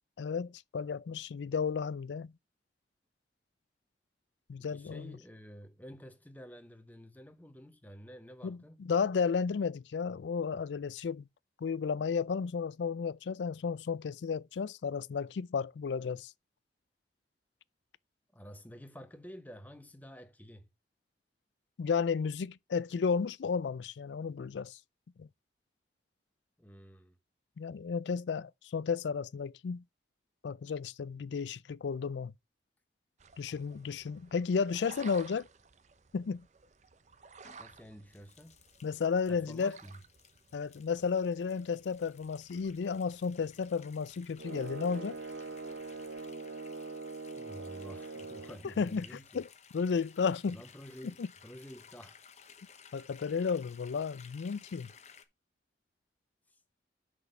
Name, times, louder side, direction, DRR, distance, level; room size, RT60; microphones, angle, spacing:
voice 1, 0.2-2.3 4.5-5.1 8.4-11.3 11.6-16.3 21.8-24.8 25.2-25.3 27.6-29.8 30.4-32.3 33.4-35.5 36.1-36.4 38.8-39.8 40.5-45.2 48.8-49.0 49.3-49.5 49.7-50.6 51.2-51.3 52.9-54.9, left 5 dB, 85° left, 0.4 m, -33 dB
voice 2, 4.7-8.8 18.3-20.7 26.6-27.2 37.6-38.5 39.3-40.0 47.4-49.4 50.5-52.2 56.5-56.6, equal, 10° left, 0.9 m, -50 dB
sound 1, 33.2-46.2, right 5 dB, 40° right, 0.6 m, -57 dB
sound 2, 37.4-55.2, left 7 dB, 40° left, 0.9 m, -58 dB
sound 3, 44.4-48.6, right 3 dB, 90° right, 0.7 m, -42 dB
6.1 x 5.7 x 5.3 m
head